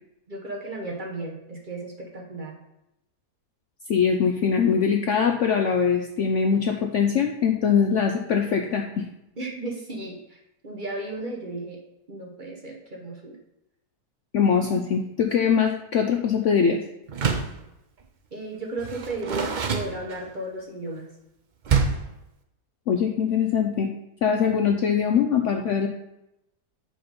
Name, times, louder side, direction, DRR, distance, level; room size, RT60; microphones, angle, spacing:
voice 1, 0.3-2.5 9.4-10.4 10.6-11.8 12.1-13.4 18.3-21.1, right 2 dB, 35° right, -1 dB, 1.0 m, -34 dB
voice 2, 3.9-9.1 14.3-16.8 22.9-23.9 24.2-25.9, left 6 dB, 65° left, 4 dB, 0.8 m, -22 dB
Door, 17.1-17.6 18.8-20.5 21.6-22.1, right 5 dB, 70° right, 0.4 m, -26 dB
5.8 x 5.2 x 5.2 m, 0.86 s
omnidirectional pair, 1.7 m